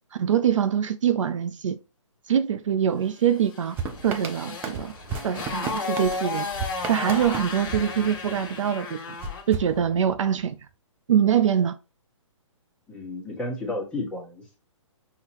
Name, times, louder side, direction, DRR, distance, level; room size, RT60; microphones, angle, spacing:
voice 1, 0.2-1.8 2.3-3.8 4.0-4.9 5.2-6.5 6.9-9.0 9.5-10.6 11.1-11.8, right 9 dB, 70° right, 0.4 m, -23 dB
Motorcycle, 3.5-9.5, left 4 dB, 45° left, 1.3 m, -33 dB
sound 1, 3.8-8.6 9.2-10.4, right 5 dB, 15° right, 0.4 m, -35 dB
voice 2, 12.9-14.6, left 2 dB, 5° left, 1.3 m, -32 dB
5.7 x 2.8 x 2.9 m
hypercardioid pair, 145°, 17 cm